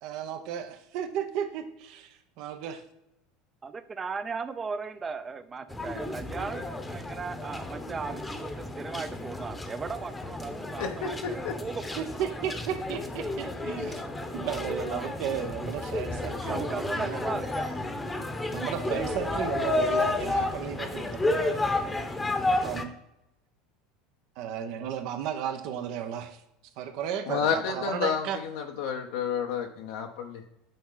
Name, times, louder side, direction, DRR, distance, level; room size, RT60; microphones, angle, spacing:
voice 1, 0.0-2.8 12.0-14.0 14.3-17.2 18.5-21.6 22.5-22.9 24.4-26.4 26.8-28.4, right 9 dB, 65° right, 8 dB, 0.9 m, -34 dB
voice 2, 3.6-12.0 12.5-12.6 13.4-13.5 16.5-17.7, right 5 dB, 25° right, 11 dB, 0.6 m, -37 dB
sound 1, 5.7-22.8, left 2 dB, 15° left, 0.9 m, -32 dB
voice 3, 10.8-11.6 13.8-13.9 27.3-30.4, left 7 dB, 75° left, 2 dB, 0.8 m, -31 dB
9.1 x 4.3 x 3.9 m, 0.83 s
supercardioid pair, 100°, 0 cm